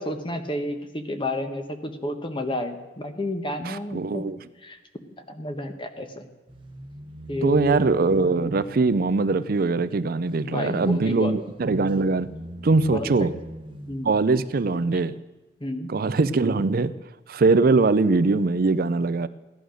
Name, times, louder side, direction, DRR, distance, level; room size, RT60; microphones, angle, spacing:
voice 1, 0.0-4.3 4.6-4.8 5.2-6.3 7.3-7.8 10.4-11.4 12.9-13.3 13.9-14.1 15.6-15.9, left 1 dB, 25° left, 7 dB, 1.3 m, -30 dB
voice 2, 3.7-4.4 7.4-12.3 12.6-13.3 14.0-15.1 15.9-16.9 17.3-19.3, right 3 dB, 50° right, 14 dB, 0.5 m, -22 dB
sound 1, 6.5-14.8, equal, 30° right, 1.1 m, -42 dB
16.0 x 11.0 x 6.4 m, 1.2 s
head